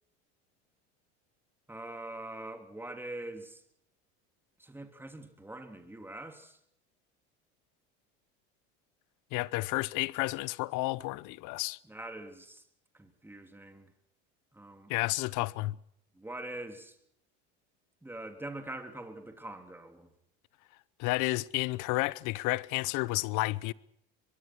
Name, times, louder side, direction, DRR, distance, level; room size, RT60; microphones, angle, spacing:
voice 1, 1.7-3.6 4.6-6.6 11.8-12.6 12.9-13.9 14.5-14.9 16.1-17.0 18.0-20.1, right 1 dB, 5° right, 3.4 m, -43 dB
voice 2, 9.3-11.8 14.9-15.8 21.0-23.7, left 21 dB, 60° left, 0.9 m, -31 dB
23.0 x 22.5 x 6.3 m
supercardioid pair, 95°, 34 cm